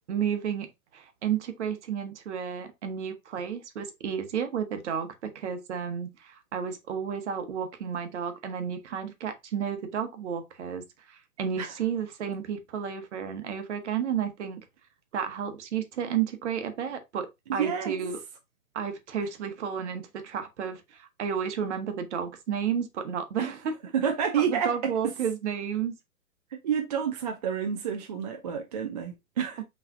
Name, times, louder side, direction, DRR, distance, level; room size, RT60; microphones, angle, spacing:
voice 1, 0.1-0.7 0.9-14.6 15.1-18.2 18.7-23.8 24.4-25.9 29.6-29.7, right 8 dB, 55° right, 1.1 m, -32 dB
voice 2, 17.5-18.0 23.4-23.5 23.9-25.1 26.5-29.6, right 7 dB, 30° right, 0.4 m, -29 dB
5.6 x 3.3 x 2.5 m
hypercardioid pair, 125°, 43 cm